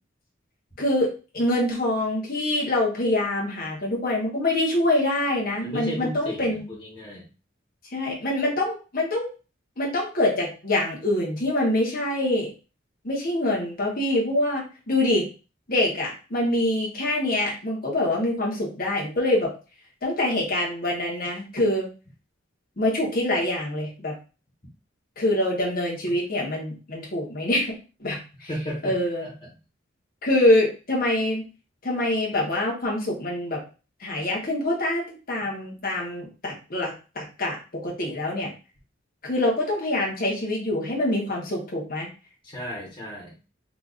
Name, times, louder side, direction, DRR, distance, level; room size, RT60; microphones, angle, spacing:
voice 1, 0.8-6.6 7.9-9.3 9.8-12.5 13.0-15.3 15.7-19.5 20.0-21.9 22.8-24.1 25.2-27.7 28.0-28.5 28.8-29.2 30.2-31.4 31.8-33.6 34.0-38.5 39.2-42.1, left 1 dB, 50° left, -2 dB, 1.3 m, -25 dB
voice 2, 5.6-7.3 28.5-29.0 29.2-29.3 42.4-43.4, left 1 dB, 30° left, -5 dB, 1.3 m, -34 dB
4.0 x 2.7 x 2.5 m, 0.33 s
head